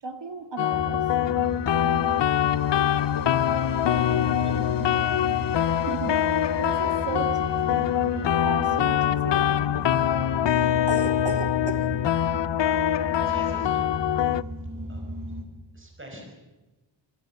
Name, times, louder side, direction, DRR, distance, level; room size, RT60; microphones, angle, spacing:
voice 1, 0.0-1.1 5.9-10.0 10.9-11.9, right 4 dB, 65° right, 7 dB, 2.0 m, -35 dB
sound 1, 0.6-14.4, left 11 dB, 65° left, 0.6 m, -24 dB
sound 2, 0.7-15.4, equal, 40° right, 2.7 m, -36 dB
sound 3, 1.3-10.1, left 3 dB, 45° left, 1.0 m, -42 dB
voice 2, 4.0-4.5 13.2-14.0 14.9-15.1 15.7-16.3, left 1 dB, 25° right, 2 dB, 5.0 m, -44 dB
25.0 x 16.5 x 6.9 m, 1.1 s
wide cardioid pair, 130°, 47 cm